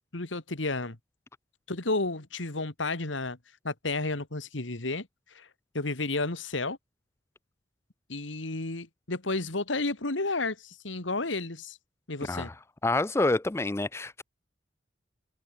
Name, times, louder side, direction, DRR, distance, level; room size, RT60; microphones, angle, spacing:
voice 1, 0.1-1.0 1.7-3.4 3.6-5.1 5.3-5.5 5.7-6.8 8.1-11.8 12.1-12.5, left 2 dB, 90° left, 2.3 m, -31 dB
voice 2, 12.8-14.2, left 2 dB, 15° left, 0.4 m, -27 dB
head